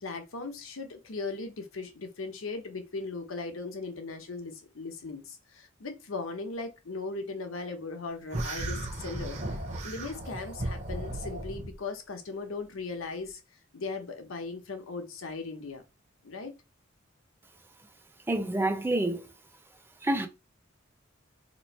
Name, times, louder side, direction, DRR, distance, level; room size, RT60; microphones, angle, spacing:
voice 1, 0.0-9.4 9.8-13.4 13.7-15.8 16.2-16.5, left 3 dB, 90° left, 0.8 m, -38 dB
sound 1, 8.3-11.7, right 1 dB, 35° right, 0.8 m, -35 dB
voice 2, 18.3-19.3 20.0-20.3, right 1 dB, 10° right, 0.6 m, -27 dB
3.0 x 2.6 x 4.1 m
head